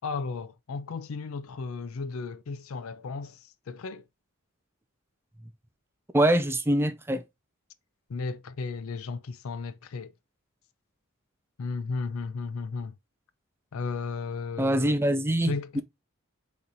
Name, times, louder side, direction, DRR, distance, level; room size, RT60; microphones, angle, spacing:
voice 1, 0.0-4.0 8.1-10.1 11.6-13.0 13.7-15.0 15.4-15.8, left 4 dB, 70° left, 0.5 m, -34 dB
voice 2, 6.1-7.2 14.6-15.8, right 1 dB, 10° right, 0.5 m, -24 dB
3.9 x 3.1 x 4.0 m
head